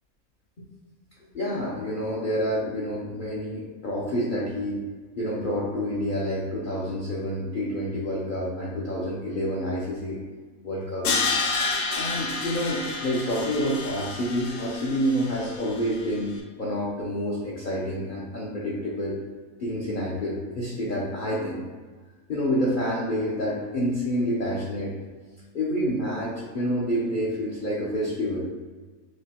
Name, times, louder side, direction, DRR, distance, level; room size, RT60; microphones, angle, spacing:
voice 1, 1.3-4.8 5.2-10.2 10.6-11.1 11.9-16.3 16.6-19.2 19.6-21.6 22.3-24.9 25.5-28.4, equal, 50° left, -6 dB, 0.6 m, -28 dB
Crash cymbal, 11.0-16.1, left 3 dB, 70° left, 1.0 m, -30 dB
6.1 x 2.1 x 2.8 m, 1.4 s
omnidirectional pair, 1.6 m